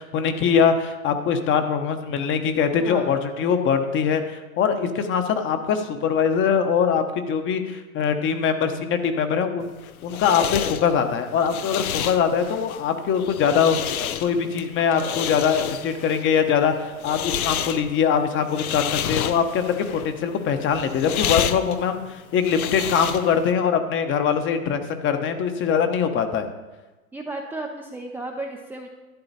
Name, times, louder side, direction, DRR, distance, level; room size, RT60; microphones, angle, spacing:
voice 1, 0.0-9.7 10.0-13.9 14.2-26.5, left 7 dB, 30° left, 8 dB, 1.1 m, -22 dB
voice 2, 2.8-3.1 27.1-28.9, right 2 dB, 5° right, 0 dB, 0.6 m, -34 dB
sound 1, 9.7-23.5, left 9 dB, 80° left, 0.8 m, -30 dB
11.5 x 9.9 x 4.2 m, 1.1 s
hypercardioid pair, 120°, 42 cm